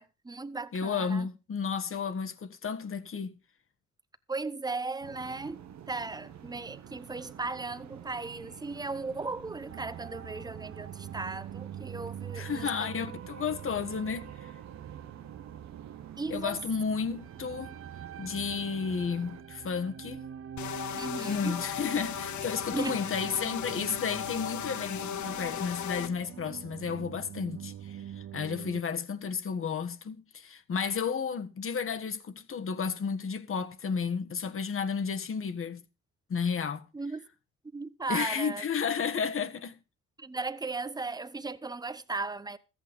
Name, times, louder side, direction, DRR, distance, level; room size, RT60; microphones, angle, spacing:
voice 1, 0.0-1.3 4.3-5.6 5.9-12.9 16.2-16.5 21.0-21.6 22.7-23.0 36.9-37.3 37.7-38.6 40.2-42.6, right 3 dB, 15° right, 1.0 m, -36 dB
voice 2, 0.7-3.3 12.3-14.5 16.3-17.8 18.2-20.3 21.3-35.8 36.3-36.8 38.1-39.8, left 6 dB, 45° left, 1.6 m, -32 dB
sound 1, 5.0-19.4, right 10 dB, 65° right, 1.3 m, -49 dB
sound 2, 9.7-28.8, right 10 dB, 45° right, 0.7 m, -44 dB
sound 3, 20.6-26.1, left 10 dB, 70° left, 1.0 m, -36 dB
14.0 x 8.5 x 5.3 m
cardioid pair, 90°, 30 cm